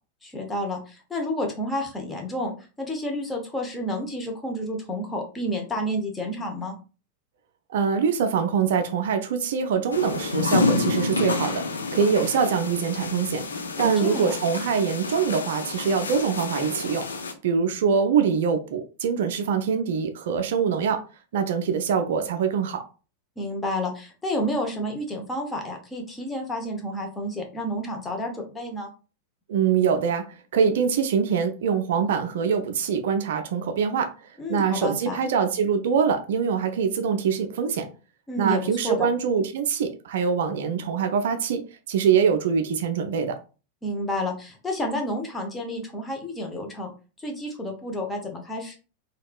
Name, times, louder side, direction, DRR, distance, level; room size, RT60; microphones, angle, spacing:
voice 1, 0.2-6.7 13.8-14.3 23.4-28.9 34.4-35.2 38.3-39.1 43.8-46.9 47.2-48.8, left 1 dB, 15° left, 0.8 m, -30 dB
voice 2, 7.7-17.1 17.4-21.0 21.3-22.8 29.5-34.1 34.5-37.9 38.4-41.6 41.9-43.4, right 6 dB, 55° right, 0.3 m, -24 dB
sound 1, 9.9-17.3, left 3 dB, 75° left, 0.4 m, -28 dB
3.4 x 2.2 x 2.3 m
figure-of-eight pair, 90°, 0 cm